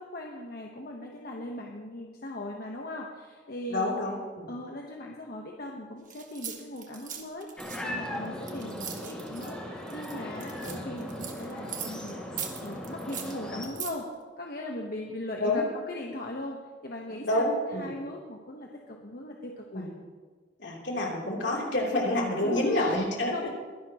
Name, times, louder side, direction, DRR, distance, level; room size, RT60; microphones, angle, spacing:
voice 1, 0.0-3.9 4.5-14.1 14.4-16.6 16.8-19.9 22.4-22.9 23.3-23.6, left 1 dB, 55° left, 0 dB, 1.2 m, -39 dB
voice 2, 3.7-4.5 15.4-15.6 17.2-18.0 19.7-19.9 20.6-23.6, left 1 dB, 75° left, -2 dB, 3.4 m, -28 dB
sound 1, 6.1-9.5 9.9-12.1 12.4-13.9, right 8 dB, 45° right, 1.5 m, -40 dB
sound 2, 7.6-13.7, equal, 5° left, 2.1 m, -38 dB
22.5 x 11.0 x 3.0 m, 1.5 s
head